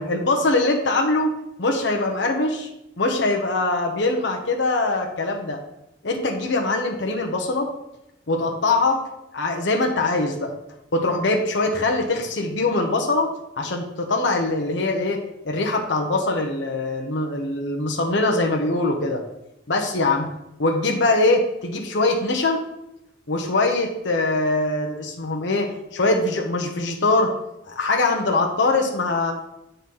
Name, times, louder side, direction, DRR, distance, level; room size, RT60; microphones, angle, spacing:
voice 1, 0.0-1.3 1.6-2.7 3.0-5.6 6.0-7.7 8.3-9.0 9.3-10.5 10.9-13.3 13.6-19.2 19.7-20.3 20.6-22.6 23.3-27.3 27.7-29.3, left 2 dB, 70° left, 2 dB, 0.9 m, -22 dB
7.8 x 4.0 x 5.4 m, 0.87 s
head